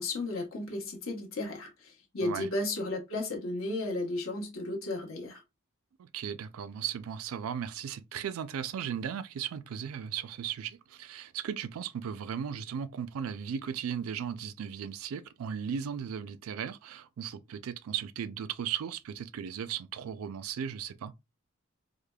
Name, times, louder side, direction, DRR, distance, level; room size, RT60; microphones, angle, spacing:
voice 1, 0.0-5.4, left 2 dB, 65° left, 1.0 m, -34 dB
voice 2, 6.0-21.1, right 8 dB, 80° right, 0.4 m, -36 dB
4.8 x 2.1 x 2.2 m
head